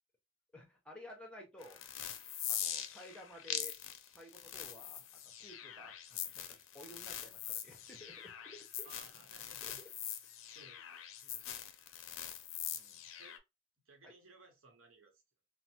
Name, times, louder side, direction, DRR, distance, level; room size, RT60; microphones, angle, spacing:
voice 1, 0.5-1.8 2.5-3.8 4.1-5.1 5.4-8.9 9.6-9.9 11.2-11.4 12.7-13.0 14.0-14.1, left 1 dB, 5° left, 0.7 m, -54 dB
sound 1, 1.6-13.4, left 10 dB, 80° left, 0.5 m, -43 dB
voice 2, 8.8-9.8 10.2-11.0 11.3-11.6 13.2-13.4 13.9-15.2, right 3 dB, 85° right, 0.9 m, -61 dB
3.1 x 2.0 x 2.8 m
head